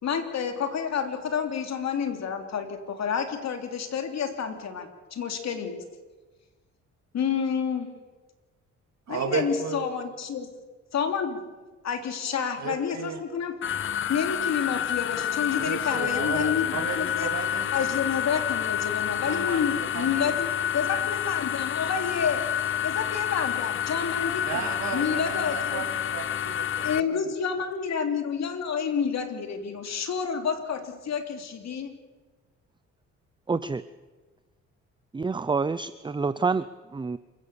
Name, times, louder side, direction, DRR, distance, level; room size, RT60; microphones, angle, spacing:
voice 1, 0.0-5.8 7.1-7.9 9.1-10.5 10.9-11.4 11.8-13.6 14.1-17.3 17.7-22.5 22.8-25.8 26.8-31.9, left 7 dB, 60° left, 6 dB, 3.2 m, -29 dB
voice 2, 9.1-9.9 12.6-13.2 15.5-17.9 19.2-19.6 19.9-20.3 24.4-26.9, right 6 dB, 65° right, 4 dB, 3.0 m, -34 dB
sound 1, 13.6-27.0, left 10 dB, 40° left, 0.6 m, -29 dB
voice 3, 33.5-33.8 35.1-36.6 36.9-37.2, right 4 dB, 15° right, 14 dB, 0.6 m, -27 dB
27.5 x 16.5 x 7.0 m, 1.3 s
cardioid pair, 90°, 30 cm